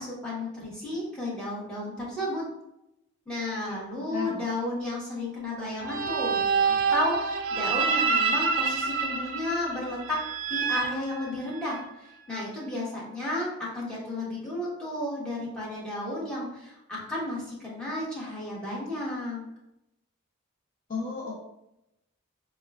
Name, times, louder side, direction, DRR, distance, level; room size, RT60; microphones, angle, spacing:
voice 1, 0.0-2.4 3.3-6.4 6.6-10.2 10.5-19.4, left 1 dB, 5° left, -7 dB, 0.9 m, -33 dB
voice 2, 4.1-4.4 20.9-21.3, left 4 dB, 40° left, -4 dB, 0.5 m, -33 dB
sound 1, 5.8-11.8, right 5 dB, 65° right, 0.3 m, -27 dB
4.6 x 2.1 x 2.3 m, 0.87 s
head